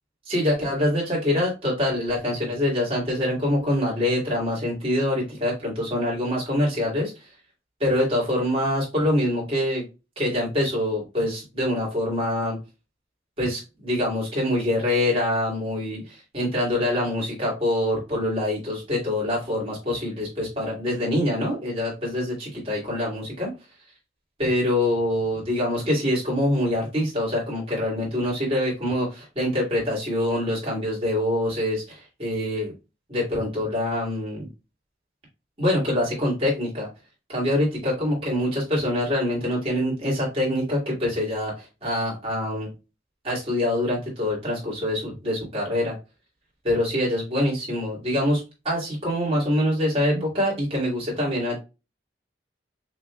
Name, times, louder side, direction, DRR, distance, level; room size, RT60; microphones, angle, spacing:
voice 1, 0.3-7.1 7.8-9.8 10.2-12.6 13.4-23.5 24.4-32.7 33.1-34.5 35.6-36.9 37.3-42.7 43.2-45.9 46.6-51.6, left 1 dB, 35° right, -4 dB, 2.8 m, -25 dB
6.0 x 3.4 x 2.3 m, 0.28 s
head